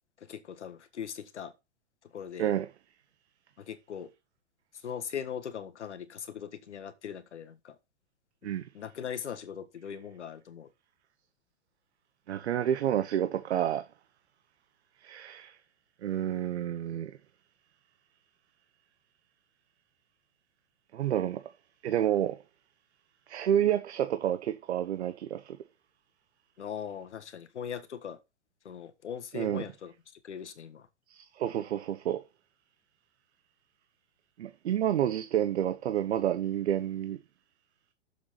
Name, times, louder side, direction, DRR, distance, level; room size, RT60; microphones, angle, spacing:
voice 1, 0.2-1.5 2.0-2.5 3.6-4.1 4.7-7.8 8.7-10.7 26.6-28.2 28.6-29.9 30.2-30.9, left 8 dB, 90° left, 1.6 m, -40 dB
voice 2, 12.3-13.9 15.0-15.6 16.0-17.2 20.9-21.4 21.8-22.4 23.3-25.6 29.3-29.6 31.1-32.2 34.4-37.2, right 10 dB, 75° right, 1.0 m, -29 dB
7.2 x 6.5 x 5.8 m
hypercardioid pair, 130°, 34 cm